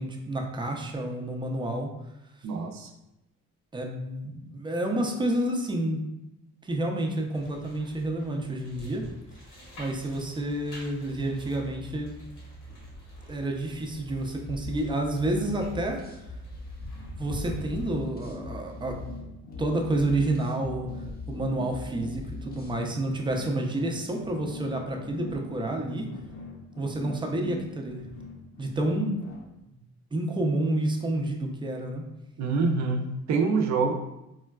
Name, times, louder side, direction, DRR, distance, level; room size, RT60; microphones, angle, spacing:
voice 1, 0.0-1.9 3.7-6.1 6.6-9.1 9.8-12.2 13.3-16.2 17.2-19.0 19.6-20.9 21.3-26.1 26.8-28.0 28.6-29.3 30.1-32.0, right 1 dB, 15° right, 1 dB, 0.5 m, -29 dB
voice 2, 2.4-2.9 32.4-33.9, right 4 dB, 65° right, 4 dB, 0.5 m, -26 dB
sound 1, 7.3-17.9, left 1 dB, 85° left, 1.2 m, -45 dB
sound 2, 14.3-22.8, left 2 dB, 30° left, 0.7 m, -42 dB
sound 3, 16.9-29.4, left 2 dB, 65° left, 0.7 m, -43 dB
3.7 x 2.2 x 2.2 m, 0.90 s
cardioid pair, 90°, 30 cm